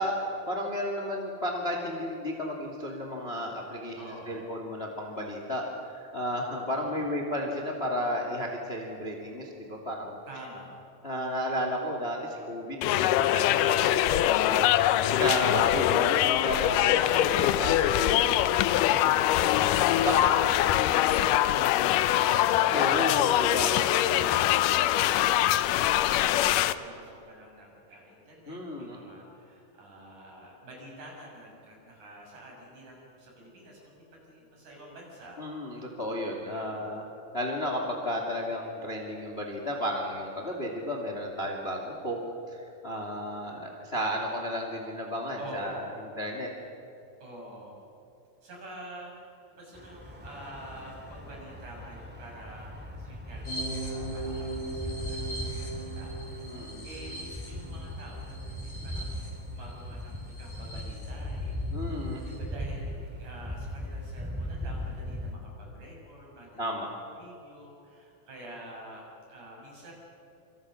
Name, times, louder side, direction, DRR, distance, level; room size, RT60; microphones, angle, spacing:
voice 1, 0.0-10.2 11.0-14.7 15.2-18.3 18.9-19.5 19.8-20.1 22.7-23.7 28.5-29.0 35.4-37.0 37.3-42.2 42.5-45.8 46.2-46.5 56.5-56.9 61.7-62.2 66.6-66.9, equal, 20° left, 2 dB, 2.2 m, -33 dB
voice 2, 4.0-4.5 6.7-7.1 10.3-10.7 12.8-13.2 15.1-15.6 18.0-19.0 19.8-20.8 21.3-23.3 24.0-24.5 24.9-35.4 36.5-36.9 45.4-45.9 47.2-47.8 48.4-56.2 56.4-61.6 62.0-69.9, right 1 dB, 55° right, -2 dB, 8.2 m, -47 dB
sound 1, 12.8-26.7, left 13 dB, 75° left, 2.1 m, -23 dB
sound 2, 49.7-65.3, left 1 dB, 5° right, 1.7 m, -38 dB
sound 3, 53.4-61.1 61.5-61.6 61.9-62.4, right 2 dB, 50° left, 7.9 m, -39 dB
27.0 x 26.5 x 6.4 m, 2.8 s
omnidirectional pair, 4.2 m